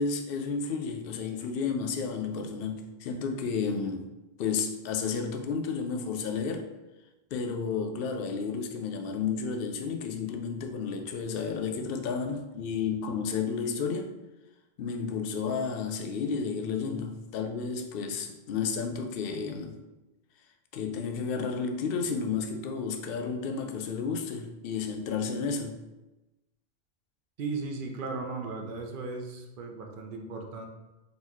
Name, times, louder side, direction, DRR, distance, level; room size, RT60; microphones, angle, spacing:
voice 1, 0.0-4.1 4.4-6.7 7.3-14.1 14.8-19.8 20.7-25.8, left 5 dB, 70° left, 5 dB, 0.7 m, -32 dB
voice 2, 27.4-30.7, right 3 dB, 60° right, 3 dB, 0.7 m, -36 dB
3.9 x 3.9 x 3.0 m, 1.0 s
omnidirectional pair, 1.0 m